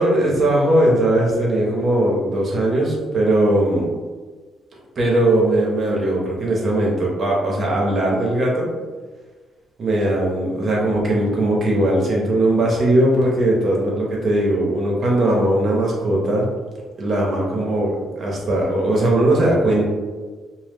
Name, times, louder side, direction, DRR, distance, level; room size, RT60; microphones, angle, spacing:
voice 1, 0.0-3.9 5.0-8.7 9.8-16.5 17.0-19.9, right 1 dB, 45° right, -2 dB, 0.7 m, -19 dB
2.1 x 2.0 x 3.4 m, 1.4 s
cardioid pair, 90°, 0 cm